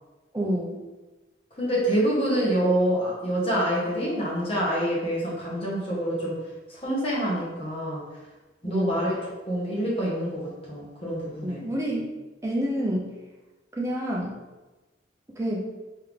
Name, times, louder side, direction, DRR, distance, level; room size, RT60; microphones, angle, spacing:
voice 1, 0.3-0.8 8.6-9.0 11.4-12.1 12.4-13.2 13.8-14.3 15.4-15.7, equal, 15° right, -3 dB, 0.5 m, -28 dB
voice 2, 1.6-6.4 6.7-8.0 8.6-9.1 9.5-11.7, right 1 dB, 30° left, -5 dB, 1.2 m, -26 dB
3.4 x 3.3 x 3.5 m, 1.1 s
head